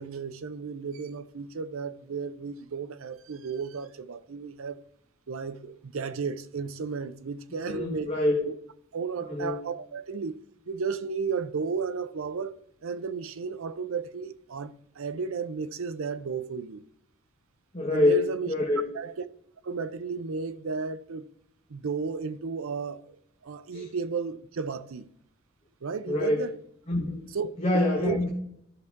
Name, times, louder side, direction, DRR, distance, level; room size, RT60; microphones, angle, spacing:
voice 1, 0.0-4.8 5.3-8.1 8.4-8.5 8.9-10.4 10.7-12.5 12.8-16.8 17.9-18.5 18.9-19.1 19.6-21.2 21.7-25.1 25.8-26.5 27.3-28.2, right 5 dB, 80° right, 0.6 m, -33 dB
voice 2, 7.6-8.4 9.2-9.6 17.7-18.9 23.7-23.9 26.1-26.4 26.9-27.2 27.6-28.3, left 2 dB, 30° left, 1.3 m, -26 dB
13.0 x 5.8 x 3.6 m
head